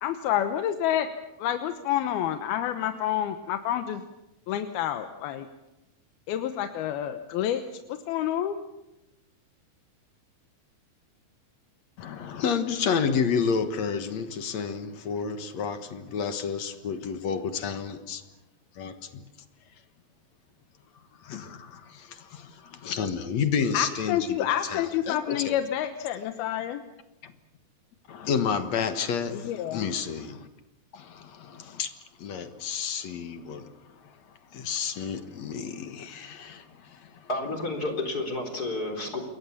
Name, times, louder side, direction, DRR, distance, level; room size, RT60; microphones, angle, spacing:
voice 1, 0.0-1.1 1.4-4.0 4.5-5.5 6.3-7.6 7.9-8.6 23.7-26.8 29.3-29.9, left 11 dB, 90° left, 8 dB, 3.0 m, -28 dB
voice 2, 12.0-18.2 18.8-19.2 21.2-25.5 27.2-27.3 28.1-30.5 30.9-31.9 32.2-33.7 34.0-34.2 34.5-37.3, left 6 dB, 55° left, 9 dB, 2.3 m, -30 dB
voice 3, 37.3-39.2, left 2 dB, 25° left, 4 dB, 4.0 m, -30 dB
28.0 x 22.5 x 7.2 m, 0.97 s
omnidirectional pair, 4.2 m